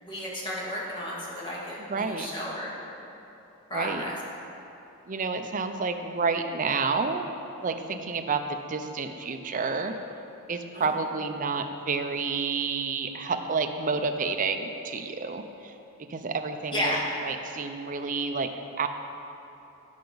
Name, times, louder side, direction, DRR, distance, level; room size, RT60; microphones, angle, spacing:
voice 1, 0.0-2.8 3.7-4.1 10.7-10.9 16.7-17.1, equal, 20° left, -5 dB, 1.9 m, -32 dB
voice 2, 1.9-2.3 3.7-4.1 5.1-7.3 7.6-9.9 10.5-15.7 16.1-16.9 17.2-18.5 18.8-18.9, right 4 dB, 35° right, 6 dB, 0.5 m, -29 dB
15.5 x 5.8 x 3.9 m, 3.0 s
head